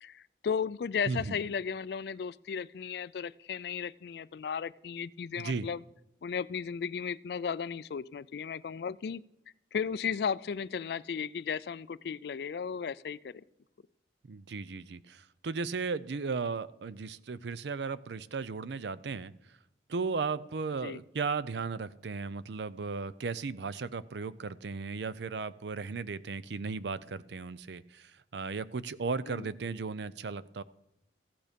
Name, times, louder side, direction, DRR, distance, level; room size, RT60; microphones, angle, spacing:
voice 1, 0.0-5.8 6.2-9.2 9.7-13.4 20.8-21.0 29.3-29.5, left 6 dB, 60° left, 19 dB, 0.3 m, -35 dB
voice 2, 1.1-1.4 5.4-5.7 14.3-19.3 19.9-30.6, right 4 dB, 70° right, 17 dB, 0.5 m, -36 dB
15.0 x 8.7 x 5.2 m, 0.85 s
head